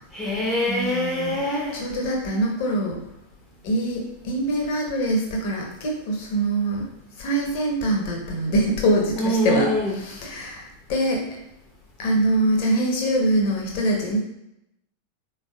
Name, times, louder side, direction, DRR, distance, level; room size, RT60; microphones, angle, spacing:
voice 1, 0.1-1.8 9.2-10.0, equal, 5° left, -3 dB, 0.7 m, -24 dB
voice 2, 0.7-1.3 1.7-3.0 3.6-6.9 7.2-9.7 10.0-11.2 12.0-14.2, right 1 dB, 45° left, 0 dB, 0.9 m, -24 dB
3.8 x 3.4 x 2.4 m, 0.83 s
figure-of-eight pair, 90°, 0 cm